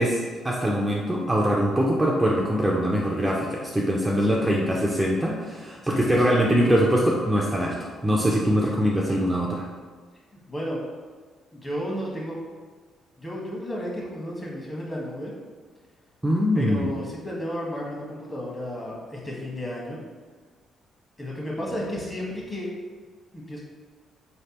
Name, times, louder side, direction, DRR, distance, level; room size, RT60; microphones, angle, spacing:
voice 1, 0.0-9.7 16.2-16.9, equal, 10° right, -3 dB, 0.5 m, -23 dB
voice 2, 10.5-10.8 11.5-12.4 13.2-15.3 16.5-20.0 21.2-22.7 23.3-23.6, equal, 25° left, -4 dB, 1.4 m, -33 dB
4.6 x 3.3 x 2.9 m, 1.5 s
cardioid pair, 90°, 0 cm